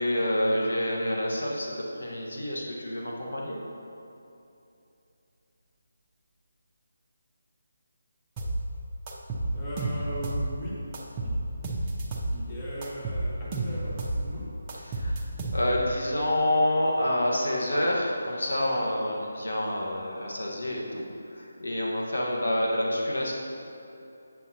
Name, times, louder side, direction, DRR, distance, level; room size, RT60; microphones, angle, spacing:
voice 1, 0.0-3.6 14.8-15.2 15.5-23.3, left 1 dB, 85° left, -2 dB, 1.3 m, -28 dB
sound 1, 8.4-8.6 9.1-10.5 10.9-12.4 12.8-14.2 14.7-15.9, right 2 dB, 20° right, 0.7 m, -30 dB
voice 2, 9.5-10.7 11.2-11.3 12.3-14.5, equal, 20° left, -7 dB, 1.3 m, -38 dB
8.2 x 7.2 x 2.8 m, 2.8 s
figure-of-eight pair, 165°, 0 cm